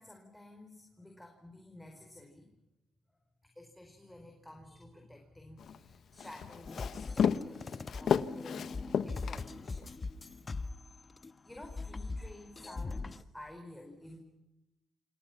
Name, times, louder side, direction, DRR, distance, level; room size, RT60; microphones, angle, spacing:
voice 1, 0.0-2.6 3.5-9.9 10.8-11.1 11.4-14.2, left 1 dB, 10° left, 3 dB, 4.6 m, -52 dB
Walk footsteps, 5.6-10.0, left 7 dB, 60° left, 1.1 m, -33 dB
sound 1, 6.7-11.3 11.6-13.2, left 3 dB, 30° left, 1.3 m, -41 dB
28.0 x 27.0 x 6.0 m, 0.92 s
cardioid pair, 90°, 0 cm